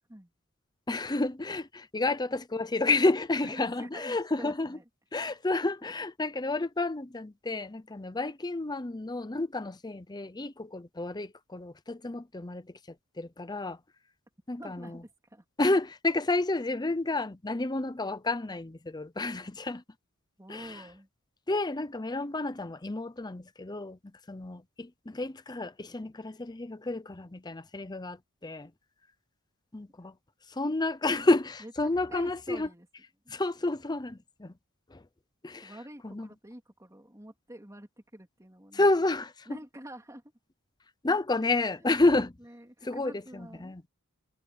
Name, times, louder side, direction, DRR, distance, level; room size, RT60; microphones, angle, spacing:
voice 1, 0.9-4.8 5.1-12.8 13.2-13.8 14.5-15.0 15.6-19.8 20.5-20.8 21.5-24.0 24.3-28.7 29.7-30.1 30.5-32.7 33.3-34.5 34.9-35.0 35.4-35.7 36.0-36.3 38.7-39.6 41.0-42.3 42.8-43.8, left 2 dB, 20° left, 0.7 m, -30 dB
voice 2, 3.4-4.8 14.6-15.4 20.4-21.1 31.6-32.9 35.6-38.9 39.5-40.2 41.7-41.9 42.4-43.9, right 1 dB, 15° right, 3.5 m, -47 dB
head